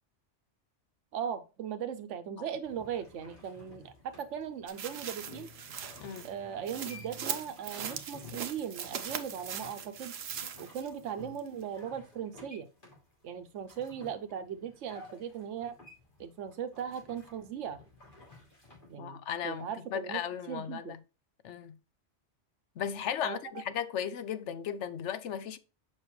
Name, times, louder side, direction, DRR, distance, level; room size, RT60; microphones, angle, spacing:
voice 1, 1.1-5.5 6.2-10.1 10.6-12.7 13.2-15.7 16.2-17.8 18.9-20.2 20.5-21.0 23.2-23.6, right 8 dB, 90° right, 1.0 m, -38 dB
sound 1, 2.6-18.9, left 3 dB, 45° left, 3.0 m, -54 dB
sound 2, 4.7-11.0 11.4-11.5, right 8 dB, 65° right, 0.9 m, -40 dB
voice 2, 19.0-21.0 21.4-21.8 22.8-25.6, left 8 dB, 75° left, 1.0 m, -36 dB
7.3 x 5.6 x 3.1 m
omnidirectional pair, 1.2 m